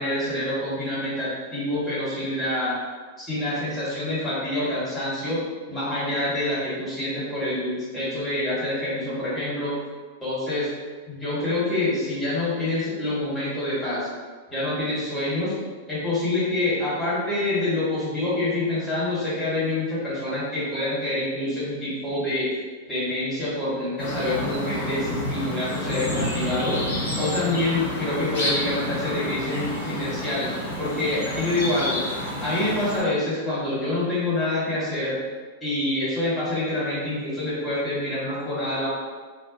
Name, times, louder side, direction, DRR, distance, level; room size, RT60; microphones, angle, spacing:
voice 1, 0.0-2.8 3.2-5.4 5.7-9.8 10.2-10.7 11.1-14.1 14.5-15.5 15.9-22.5 22.9-26.8 27.2-30.5 30.8-32.0 32.4-35.2 35.6-38.9, left 1 dB, 20° left, -10 dB, 1.3 m, -26 dB
sound 1, 24.0-33.0, left 1 dB, 70° left, 0.8 m, -29 dB
2.2 x 2.2 x 2.5 m, 1.4 s
hypercardioid pair, 100°, 0 cm